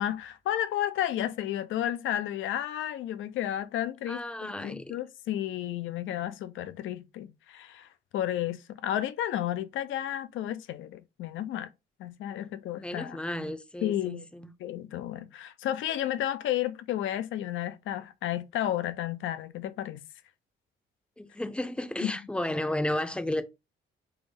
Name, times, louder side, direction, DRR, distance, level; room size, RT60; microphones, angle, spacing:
voice 1, 0.0-11.7 12.0-13.2 13.8-14.3 14.6-20.0 22.0-22.1, left 12 dB, 75° left, 0.5 m, -32 dB
voice 2, 4.1-5.0 12.3-14.5 21.2-23.4, left 1 dB, 5° left, 0.5 m, -33 dB
3.4 x 2.0 x 3.5 m
cardioid pair, 90°, 20 cm